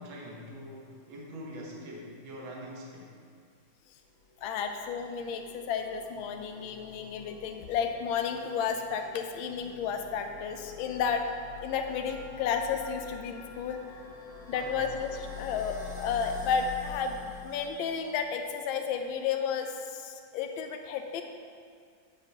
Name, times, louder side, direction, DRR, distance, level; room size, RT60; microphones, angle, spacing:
voice 1, 0.0-3.2 14.5-14.9, equal, 85° right, -2 dB, 1.9 m, -44 dB
sound 1, 4.2-18.4, left 6 dB, 45° left, 1.2 m, -47 dB
voice 2, 4.4-11.2 11.6-13.8 14.5-21.2, left 6 dB, 90° left, 5 dB, 1.4 m, -32 dB
9.1 x 8.5 x 2.9 m, 2.1 s
omnidirectional pair, 2.1 m